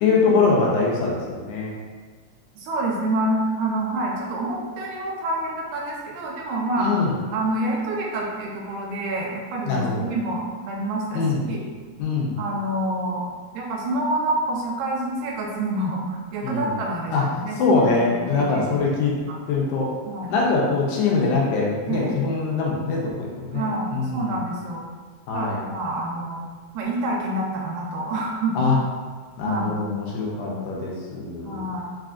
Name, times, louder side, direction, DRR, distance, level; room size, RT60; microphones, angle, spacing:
voice 1, 0.0-1.7 6.8-7.1 9.7-10.1 11.1-11.4 12.0-12.4 16.4-16.7 17.1-17.3 17.6-19.1 19.5-19.9 20.3-23.6 23.9-24.3 25.3-25.6 28.6-28.8 29.4-31.6, left 4 dB, 80° left, -3 dB, 2.1 m, -23 dB
voice 2, 2.6-6.9 7.3-11.6 12.4-13.3 13.5-17.6 18.0-18.7 19.1-19.4 20.1-20.4 21.9-22.1 23.5-24.8 25.3-26.4 26.7-28.6 29.5-29.8 30.5-30.9 31.4-31.8, right 1 dB, 80° right, -2 dB, 1.9 m, -27 dB
4.9 x 2.5 x 2.3 m, 1.5 s
omnidirectional pair, 3.6 m